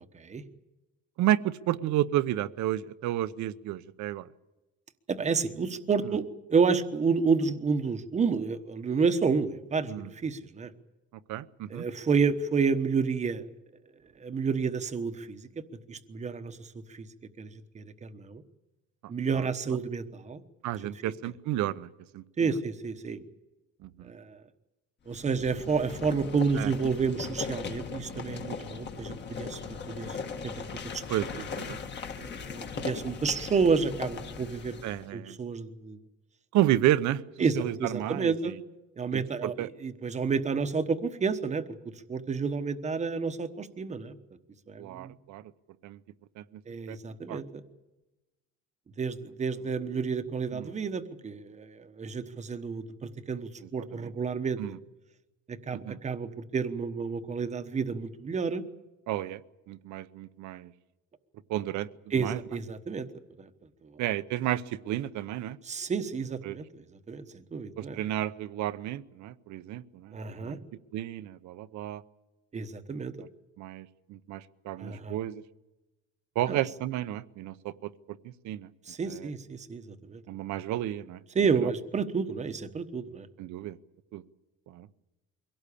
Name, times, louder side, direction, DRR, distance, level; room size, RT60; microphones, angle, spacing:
voice 1, 1.2-4.3 6.0-6.1 9.9-10.1 11.3-11.9 19.3-19.5 20.6-22.5 23.8-24.1 26.6-26.7 31.1-31.8 34.8-35.4 36.5-37.2 37.6-38.6 39.1-39.7 44.8-45.5 45.8-46.0 46.4-46.6 46.9-47.0 47.3-47.4 50.5-50.7 53.6-54.1 54.6-54.8 55.7-56.0 59.1-59.4 59.7-60.7 61.5-62.4 64.0-65.6 66.4-66.6 67.8-70.6 70.9-72.0 73.6-75.4 76.3-78.7 79.1-79.3 80.3-81.2 83.4-83.8 84.1-84.2 84.7-84.9, right 13 dB, 60° right, 14 dB, 0.9 m, -32 dB
voice 2, 5.1-10.7 11.7-13.4 14.2-17.1 17.4-18.4 19.1-20.4 22.4-23.2 24.0-24.4 25.1-30.2 30.4-30.6 30.9-31.0 32.2-34.8 35.1-36.0 37.4-38.5 39.0-41.6 42.1-44.2 44.7-45.2 46.7-47.6 49.0-54.6 55.5-58.6 62.1-63.1 63.4-63.5 63.8-63.9 65.6-68.0 70.1-70.6 72.5-73.1 74.8-75.2 76.5-76.6 78.9-80.2 81.3-83.3, right 5 dB, 20° right, 9 dB, 1.1 m, -30 dB
sound 1, 25.1-35.1, left 5 dB, 35° left, 1.6 m, -39 dB
23.5 x 17.5 x 8.5 m, 1.1 s
cardioid pair, 165°, 32 cm